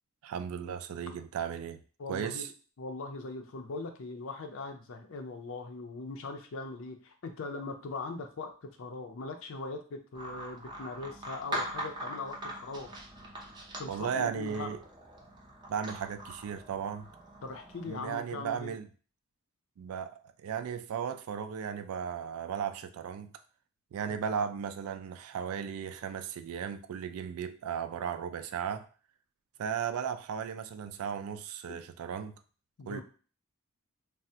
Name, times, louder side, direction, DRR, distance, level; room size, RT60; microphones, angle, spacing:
voice 1, 0.2-1.8 2.1-2.5 13.9-14.8 15.7-17.1 17.9-18.9 19.8-23.3 23.9-28.9 29.6-32.4 32.9-33.0, right 7 dB, 85° right, 0.3 m, -36 dB
voice 2, 2.0-2.5 2.8-13.0 13.8-14.7 17.4-18.7 31.7-31.8 32.8-33.0, left 3 dB, 65° left, 0.5 m, -40 dB
sound 1, 10.1-18.0, right 1 dB, 20° right, 0.5 m, -42 dB
3.3 x 2.0 x 2.7 m
head